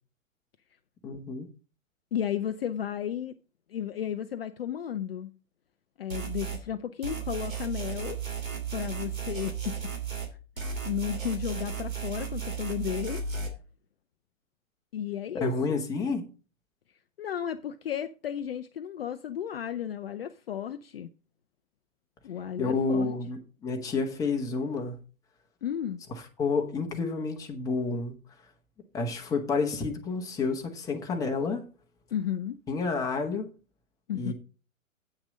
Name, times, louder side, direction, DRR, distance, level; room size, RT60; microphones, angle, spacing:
voice 1, 1.0-1.5 15.3-16.3 22.6-25.0 26.4-28.1 28.9-31.6 32.7-33.5 34.1-34.3, left 4 dB, 10° left, 1.1 m, -29 dB
voice 2, 2.1-3.3 3.7-5.3 6.0-8.2 8.7-9.8 10.9-13.2 14.9-15.8 17.2-21.1 22.2-23.1 25.6-26.0 32.1-32.6 34.1-34.3, left 10 dB, 45° left, 0.6 m, -33 dB
sound 1, 6.1-6.6 7.0-10.3 10.6-13.5, right 7 dB, 70° right, 2.8 m, -34 dB
8.8 x 5.9 x 5.2 m
figure-of-eight pair, 120°, 41 cm